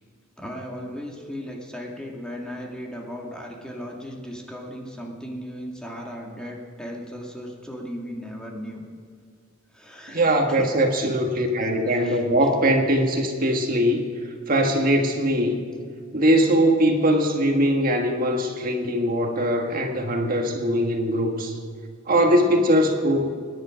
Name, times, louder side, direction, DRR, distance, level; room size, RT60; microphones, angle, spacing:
voice 1, 0.4-8.8 9.7-10.7 11.0-11.1 11.9-12.5, equal, 5° left, -1 dB, 2.1 m, -36 dB
voice 2, 10.1-14.0 14.5-15.6 16.1-21.6 22.1-23.3, equal, 45° right, 3 dB, 1.6 m, -21 dB
25.0 x 10.5 x 5.1 m, 2.2 s
head